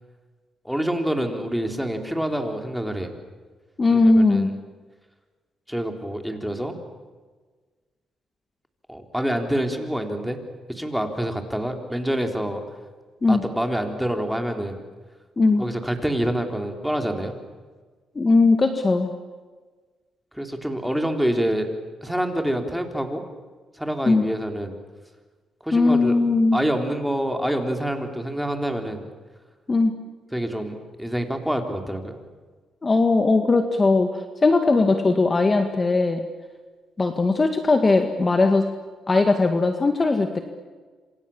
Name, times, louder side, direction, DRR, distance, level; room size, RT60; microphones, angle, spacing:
voice 1, 0.6-3.1 3.9-4.5 5.7-6.7 8.9-10.4 10.7-12.6 13.3-14.8 15.6-17.4 20.3-21.7 22.0-23.2 23.8-24.8 25.6-26.2 26.5-29.1 30.3-32.2, right 1 dB, ahead, 4 dB, 3.9 m, -26 dB
voice 2, 3.8-4.5 13.2-13.4 15.4-15.6 18.2-19.1 24.1-24.2 25.7-26.6 29.7-29.9 32.8-36.2 37.0-38.7 39.1-40.4, left 3 dB, 25° left, 6 dB, 2.0 m, -19 dB
27.5 x 27.0 x 7.3 m, 1.4 s
cardioid pair, 90°, 0 cm